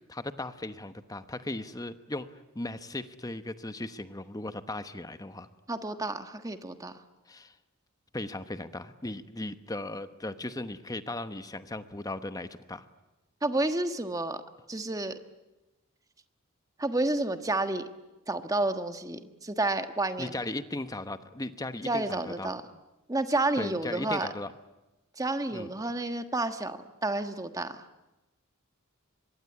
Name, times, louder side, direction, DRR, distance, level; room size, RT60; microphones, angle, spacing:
voice 1, 0.1-5.5 7.3-7.5 8.1-12.9 20.2-22.5 23.5-24.5 25.5-25.7, left 2 dB, 15° left, 11 dB, 1.0 m, -37 dB
voice 2, 5.7-7.0 13.4-14.4 14.7-15.2 16.8-17.8 18.3-20.3 21.8-22.6 23.1-24.3 25.2-27.8, right 2 dB, 15° right, 9 dB, 1.3 m, -30 dB
24.5 x 22.0 x 9.8 m, 1.0 s
head